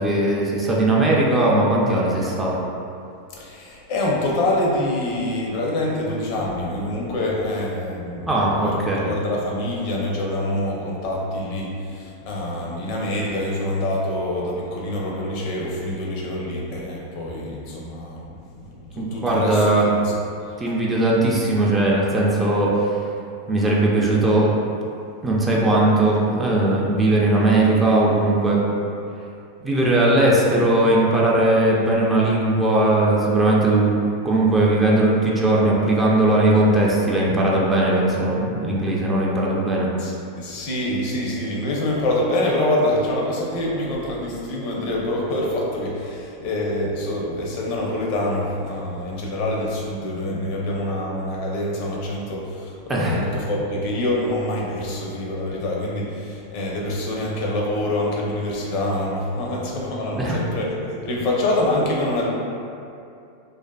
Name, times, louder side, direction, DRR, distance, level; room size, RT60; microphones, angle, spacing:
voice 1, 0.0-2.6 8.3-9.1 19.0-19.9 20.6-23.0 23.5-24.5 25.2-28.6 29.6-33.9 34.2-39.9 52.9-53.2 60.1-60.4, right 2 dB, 15° right, -4 dB, 0.4 m, -19 dB
voice 2, 3.3-8.3 8.6-18.6 18.9-20.1 40.0-60.7 61.0-62.3, left 1 dB, 55° left, -3 dB, 0.5 m, -25 dB
2.4 x 2.4 x 2.2 m, 2.5 s
hypercardioid pair, 120°, 0 cm